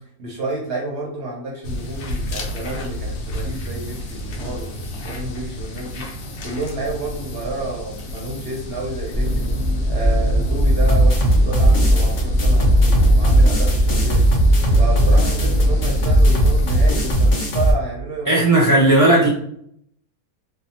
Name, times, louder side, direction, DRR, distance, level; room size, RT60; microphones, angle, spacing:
voice 1, 0.2-6.1 6.4-9.5 9.9-14.3 14.8-19.0, right 2 dB, 65° right, -2 dB, 0.6 m, -30 dB
sound 1, 1.6-17.3, left 1 dB, 70° left, 0.9 m, -32 dB
sound 2, 9.1-17.1, equal, 10° right, 0.6 m, -19 dB
sound 3, 10.9-17.7, right 1 dB, 55° left, 0.5 m, -18 dB
voice 2, 18.3-19.3, right 2 dB, 15° left, -7 dB, 1.1 m, -14 dB
2.6 x 2.1 x 2.8 m, 0.67 s
omnidirectional pair, 1.6 m